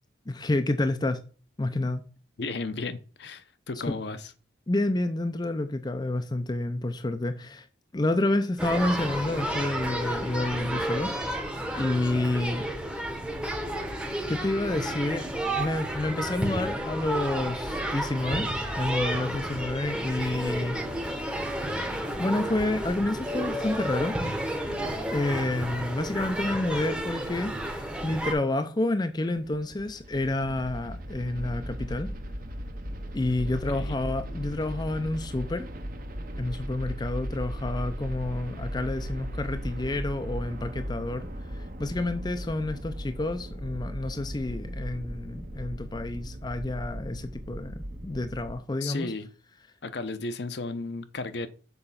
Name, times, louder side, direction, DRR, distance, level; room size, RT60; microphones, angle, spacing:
voice 1, 0.3-1.2 1.6-2.0 3.9-4.0 4.7-7.7 7.9-11.4 11.8-12.7 14.3-18.5 18.8-20.8 22.2-24.2 25.1-32.1 33.1-35.7 36.4-49.1, left 2 dB, 20° left, 0.4 m, -29 dB
voice 2, 2.4-4.3 33.5-34.0 48.8-49.3 49.8-51.5, left 3 dB, 60° left, 0.7 m, -34 dB
sound 1, 8.6-28.3, right 1 dB, 5° right, 0.9 m, -31 dB
sound 2, 29.1-48.5, equal, 45° right, 0.9 m, -37 dB
6.8 x 4.3 x 5.6 m
head